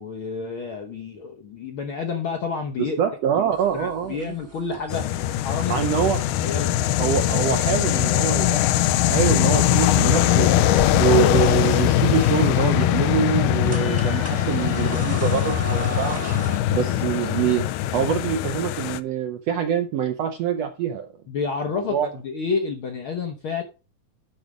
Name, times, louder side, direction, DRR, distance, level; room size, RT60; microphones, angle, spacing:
voice 1, 0.0-3.0 3.7-6.0 6.4-6.8 21.3-23.6, left 5 dB, 70° left, 1.2 m, -29 dB
voice 2, 2.8-4.3 5.7-6.2 7.0-10.5 10.9-16.3 16.7-17.6 17.9-21.1 21.7-22.1, right 8 dB, 75° right, 1.5 m, -25 dB
sound 1, 3.5-16.6, right 1 dB, 10° right, 0.6 m, -39 dB
sound 2, 4.9-19.0, left 12 dB, 90° left, 2.2 m, -21 dB
11.0 x 4.7 x 5.1 m
omnidirectional pair, 3.7 m